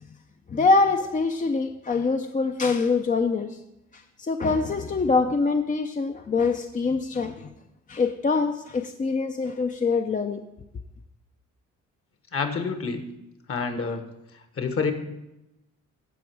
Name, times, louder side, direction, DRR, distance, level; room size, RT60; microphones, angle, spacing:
voice 1, 0.5-3.6 4.2-7.5 7.9-10.4, left 4 dB, 25° left, 0.5 m, -24 dB
voice 2, 12.3-13.1 13.5-14.1 14.6-14.9, left 5 dB, 50° left, 1.4 m, -27 dB
15.0 x 5.2 x 4.7 m
cardioid pair, 90°, 30 cm